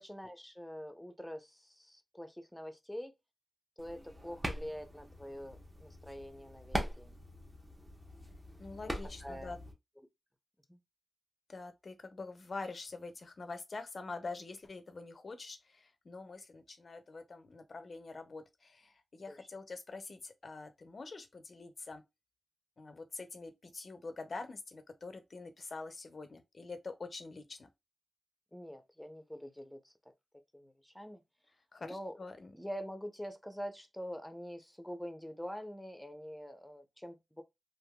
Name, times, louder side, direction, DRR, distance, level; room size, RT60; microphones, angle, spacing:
voice 1, 0.0-3.1 3.8-7.1 8.8-8.9 9.2-9.5 10.7-10.8 19.3-19.4 28.5-29.9 30.5-31.2 31.8-32.2 32.5-37.4, equal, 5° left, 0.7 m, -45 dB
sound 1, 3.8-9.7, right 1 dB, 25° right, 0.9 m, -42 dB
voice 2, 8.6-9.6 11.5-22.0 22.8-27.7 31.7-32.5, left 3 dB, 60° left, 0.6 m, -45 dB
3.5 x 2.6 x 2.2 m
cardioid pair, 60°, 0 cm